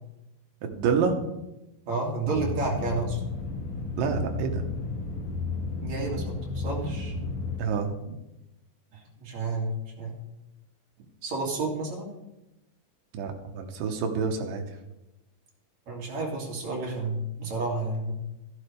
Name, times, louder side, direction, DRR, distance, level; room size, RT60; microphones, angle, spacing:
voice 1, 0.6-1.3 4.0-4.7 7.6-8.2 13.1-14.6, right 5 dB, 85° right, 4 dB, 2.9 m, -28 dB
voice 2, 1.8-3.2 5.8-7.1 8.9-10.1 11.2-12.1 15.9-18.1, right 3 dB, 55° right, -2 dB, 3.7 m, -31 dB
sound 1, 2.3-7.6, left 3 dB, 90° left, 3.4 m, -33 dB
15.5 x 10.5 x 3.4 m, 0.96 s
omnidirectional pair, 3.9 m